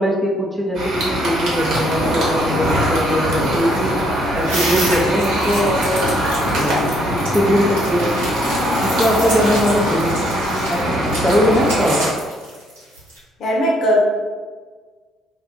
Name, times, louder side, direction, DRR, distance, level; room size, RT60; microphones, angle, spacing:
voice 1, 0.0-4.0 4.3-6.1 6.5-8.1 8.7-10.3 10.7-12.1, equal, 10° right, -2 dB, 0.6 m, -21 dB
sound 1, 0.7-12.1, equal, 55° right, 1.0 m, -21 dB
sound 2, 2.6-13.2, right 1 dB, 80° right, 1.0 m, -30 dB
voice 2, 13.4-14.0, equal, 50° left, -3 dB, 0.8 m, -17 dB
2.5 x 2.3 x 3.7 m, 1.5 s
figure-of-eight pair, 50°, 0 cm